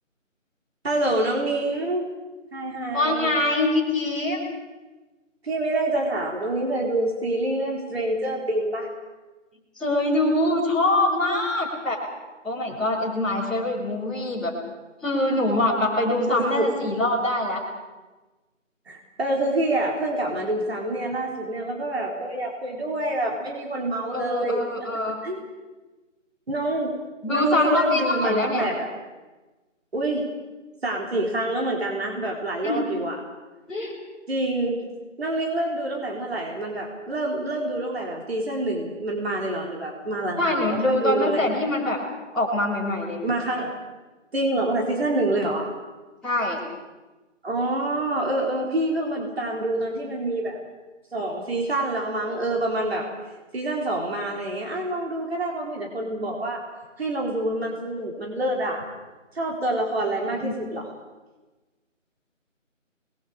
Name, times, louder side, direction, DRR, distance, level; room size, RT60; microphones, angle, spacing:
voice 1, 0.8-2.1 2.5-3.3 5.4-8.9 16.3-16.7 18.9-24.6 25.2-25.4 26.5-26.9 27.3-28.9 29.9-30.3 30.8-33.2 34.3-34.8 35.2-41.4 43.2-43.7 44.3-45.7 47.4-50.6 51.1-53.1 53.5-56.6 57.0-58.8 59.3-60.9, right 1 dB, 50° right, -1 dB, 4.2 m, -26 dB
voice 2, 2.9-4.4 9.8-12.0 12.4-14.5 15.0-17.6 24.1-25.2 27.2-28.7 32.6-32.8 33.7-34.0 40.4-42.0 42.3-43.2 46.2-46.6 60.3-60.5, left 1 dB, ahead, -14 dB, 3.4 m, -24 dB
29.5 x 21.5 x 5.0 m, 1.2 s
figure-of-eight pair, 170°, 38 cm